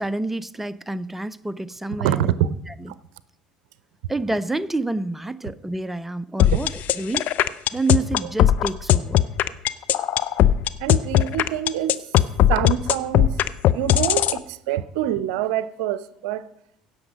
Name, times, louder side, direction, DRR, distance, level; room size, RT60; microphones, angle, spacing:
voice 1, 0.0-2.3 4.1-7.3 7.7-9.2, right 2 dB, 5° right, 0.4 m, -28 dB
voice 2, 2.0-2.5 2.9-3.0 4.0-4.1 6.5-6.6 10.8-12.1 12.5-13.4 13.7-16.5, right 11 dB, 70° right, 0.5 m, -25 dB
sound 1, 6.4-14.4, left 12 dB, 55° left, 0.5 m, -17 dB
16.5 x 6.3 x 5.1 m
hypercardioid pair, 65°, 3 cm